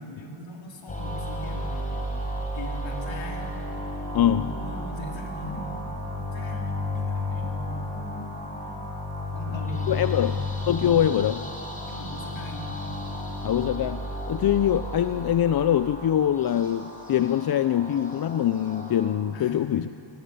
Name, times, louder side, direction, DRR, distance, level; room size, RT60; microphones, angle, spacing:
voice 1, 0.0-3.6 4.1-5.8 6.3-8.4 9.3-10.4 11.9-12.7 19.3-19.6, left 1 dB, 70° left, 1 dB, 4.2 m, -40 dB
sound 1, 0.9-19.1, left 1 dB, 15° left, 4.5 m, -33 dB
voice 2, 4.1-4.5 9.5-9.6 9.9-10.4 10.7-11.5 13.4-19.9, left 10 dB, 50° left, 12 dB, 0.6 m, -23 dB
26.5 x 19.0 x 8.3 m, 2.8 s
wide cardioid pair, 140°, 47 cm